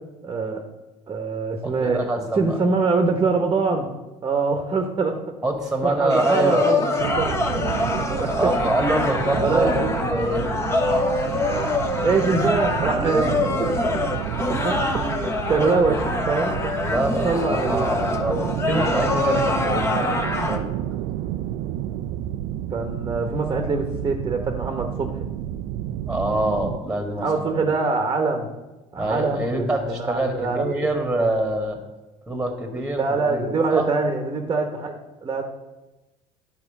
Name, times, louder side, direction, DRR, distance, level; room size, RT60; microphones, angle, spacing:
voice 1, 0.2-0.6 1.1-3.9 4.2-5.2 5.8-7.3 8.1-8.5 9.3-10.0 11.5-11.7 12.0-13.3 14.2-14.8 15.1-16.5 17.2-17.9 22.7-25.1 27.2-28.5 28.9-30.7 32.7-35.4, right 4 dB, 25° right, 4 dB, 1.1 m, -24 dB
voice 2, 1.6-2.6 5.4-6.7 8.4-10.4 16.8-20.7 26.0-27.7 29.0-31.8 32.3-33.9, right 1 dB, 5° right, 4 dB, 1.6 m, -25 dB
sound 1, 6.1-20.6, left 2 dB, 20° left, 1.1 m, -25 dB
sound 2, 7.0-26.8, right 12 dB, 70° right, 0.4 m, -30 dB
9.8 x 4.4 x 7.2 m, 1.1 s
supercardioid pair, 110°, 14 cm